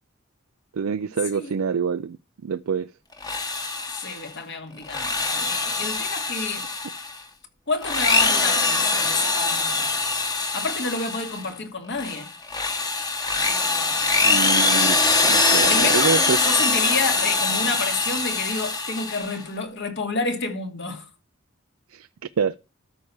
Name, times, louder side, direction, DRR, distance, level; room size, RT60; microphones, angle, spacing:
voice 1, 0.7-2.2 2.4-2.9 14.2-15.0 15.2-16.4 21.9-22.1 22.4-22.6, right 6 dB, 80° right, 0.4 m, -26 dB
Drill, 3.1-4.3 4.8-7.2 7.7-11.5 11.9-19.4, left 3 dB, 20° left, 1.3 m, -23 dB
voice 2, 3.9-6.7 7.7-9.9 10.5-12.3 15.6-21.1, left 3 dB, 60° left, 2.4 m, -29 dB
13.0 x 4.8 x 7.2 m
head